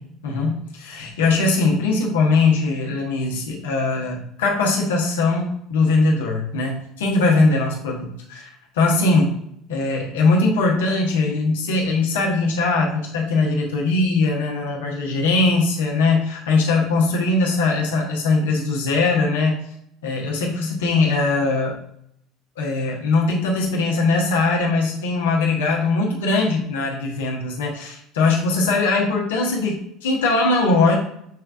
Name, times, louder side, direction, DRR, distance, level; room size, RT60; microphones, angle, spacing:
voice 1, 0.2-8.5 8.7-9.3 9.7-19.6 20.0-21.8 22.6-31.0, left 3 dB, 75° left, -1 dB, 1.1 m, -20 dB
6.6 x 3.3 x 2.5 m, 0.72 s
hypercardioid pair, 65°, 0 cm